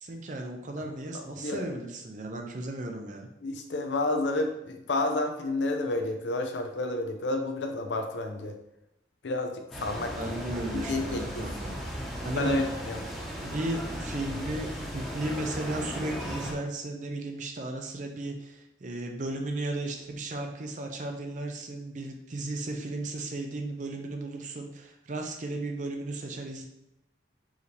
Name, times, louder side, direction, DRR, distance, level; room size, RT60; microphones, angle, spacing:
voice 1, 0.0-3.3 10.2-11.8 12.2-12.6 13.4-26.7, right 2 dB, 45° right, 3 dB, 0.5 m, -35 dB
voice 2, 1.1-1.7 3.4-8.5 9.2-10.3 10.9-11.5 12.4-13.0, left 2 dB, 80° left, 5 dB, 0.6 m, -30 dB
sound 1, 9.7-16.5, equal, ahead, 0.8 m, -36 dB
4.7 x 2.8 x 3.3 m, 0.87 s
head